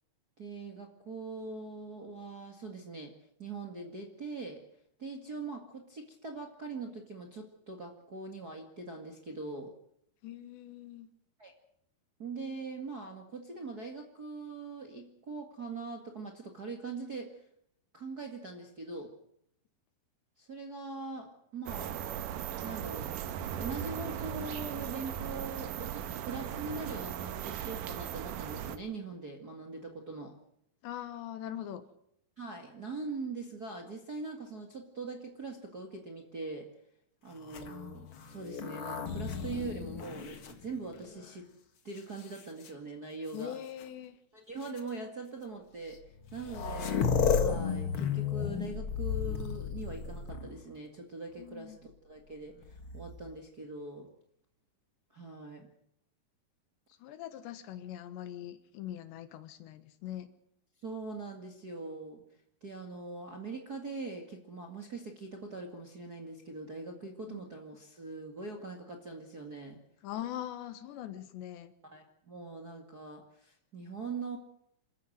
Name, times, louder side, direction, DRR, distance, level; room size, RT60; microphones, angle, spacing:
voice 1, 0.4-3.1 3.4-4.6 5.0-9.7 11.4-11.5 12.2-17.4 17.9-19.1 20.4-22.0 22.6-23.1 23.6-30.4 32.4-36.7 37.2-41.5 41.8-43.6 44.3-46.0 46.3-54.1 55.1-55.7 60.8-62.2 62.6-69.8 71.9-74.4, right 3 dB, 35° right, 2 dB, 1.5 m, -42 dB
voice 2, 10.2-11.1 30.8-31.8 43.3-44.2 51.4-51.8 57.0-60.3 67.3-67.5 70.0-71.7, left 11 dB, 85° left, 11 dB, 3.6 m, -42 dB
sound 1, 21.7-28.8, right 9 dB, 75° right, 2.0 m, -38 dB
sound 2, 37.4-41.3 42.0-42.7 43.8-43.9 44.6-44.8 45.9-46.0 46.2-50.7 52.6-53.3, left 6 dB, 60° left, 1.3 m, -34 dB
27.5 x 13.5 x 7.9 m, 0.73 s
omnidirectional pair, 5.0 m